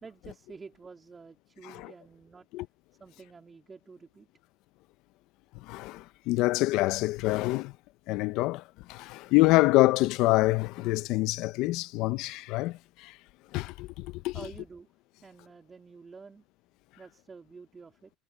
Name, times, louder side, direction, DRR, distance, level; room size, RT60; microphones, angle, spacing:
voice 1, 0.0-2.5 3.0-4.3 14.3-14.9 15.2-16.4 17.0-18.1, right 4 dB, 25° right, 3.7 m, -49 dB
voice 2, 5.7-7.7 8.1-8.6 8.9-13.1 13.5-14.3, left 20 dB, 70° left, 0.6 m, -26 dB
supercardioid pair, 110°, 0 cm